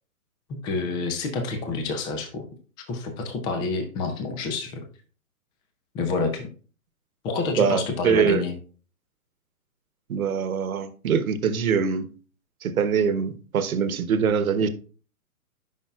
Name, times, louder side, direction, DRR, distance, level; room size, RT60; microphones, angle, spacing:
voice 1, 0.5-2.4 2.9-4.8 5.9-6.5 7.2-8.6, left 3 dB, 10° left, 0.5 m, -28 dB
voice 2, 7.6-8.4 10.1-12.1 12.6-14.7, right 6 dB, 70° right, 1.1 m, -23 dB
12.0 x 5.5 x 2.4 m
hypercardioid pair, 130°, 44 cm